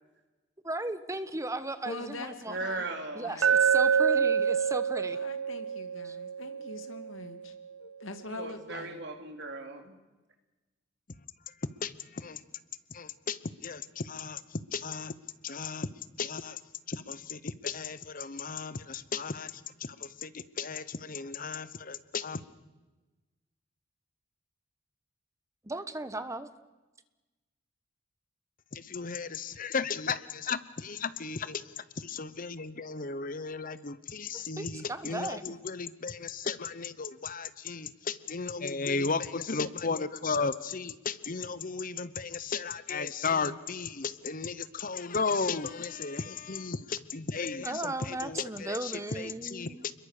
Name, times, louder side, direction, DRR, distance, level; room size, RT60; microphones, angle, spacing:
voice 1, 0.6-2.5 3.1-5.2 6.0-6.2 25.6-26.5 34.3-35.5 47.6-49.9, right 2 dB, 15° right, 12 dB, 1.1 m, -36 dB
voice 2, 1.8-2.8 3.2-3.5 5.0-7.5 7.8-9.0, left 2 dB, 80° left, 7 dB, 2.4 m, -43 dB
voice 3, 2.5-3.4 8.3-9.9, right 3 dB, 60° right, 5 dB, 3.3 m, -38 dB
Glass, 3.4-7.5, right 7 dB, 80° right, 1.0 m, -27 dB
voice 4, 11.8-12.4 12.9-15.1 15.4-15.9 16.2-16.6 16.9-22.4 28.7-49.9, left 5 dB, 45° left, 15 dB, 0.9 m, -35 dB
29.5 x 22.0 x 6.7 m, 1.2 s
head